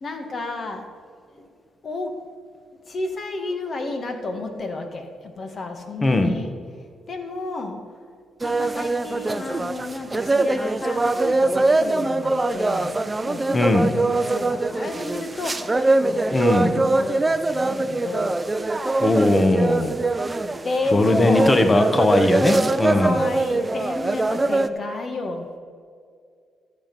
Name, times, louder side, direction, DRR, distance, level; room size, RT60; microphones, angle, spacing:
voice 1, 0.0-0.9 1.3-1.5 1.8-2.2 2.9-6.5 7.1-7.8 8.4-18.4 20.6-21.7 22.8-25.5, left 2 dB, 50° left, 5 dB, 1.7 m, -31 dB
voice 2, 6.0-6.4 13.5-13.9 16.3-16.8 19.0-20.0 20.9-23.2, left 2 dB, 25° left, 8 dB, 1.1 m, -19 dB
sound 1, 8.4-24.7, right 2 dB, 20° right, 0.6 m, -23 dB
13.5 x 7.5 x 5.4 m, 2.2 s
cardioid pair, 80°, 0 cm